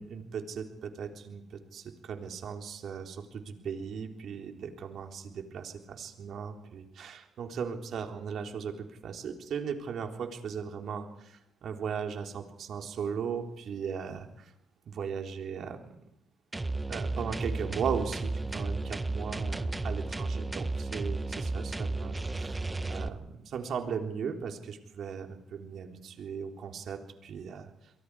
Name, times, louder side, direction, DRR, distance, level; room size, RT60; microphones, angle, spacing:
voice 1, 0.0-14.5 14.9-16.0 16.9-22.6 22.9-27.7, right 6 dB, 65° right, 4 dB, 3.5 m, -37 dB
sound 1, 16.5-23.1, right 2 dB, 20° right, 1.6 m, -33 dB
29.5 x 23.0 x 4.8 m, 0.81 s
supercardioid pair, 55°, 0 cm